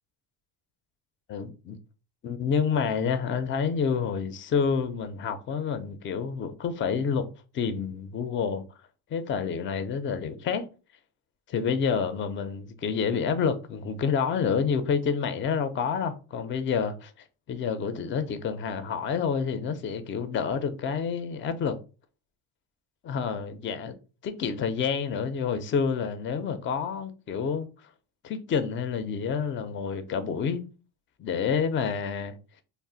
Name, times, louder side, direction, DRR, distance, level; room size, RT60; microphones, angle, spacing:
voice 1, 1.3-1.8 2.2-7.3 7.5-8.6 9.1-10.7 11.5-17.1 17.5-21.8 23.0-24.0 24.2-27.7 28.2-30.6 31.2-32.4, left 6 dB, 30° left, 0.3 m, -28 dB
2.4 x 2.0 x 3.8 m
cardioid pair, 110°, 42 cm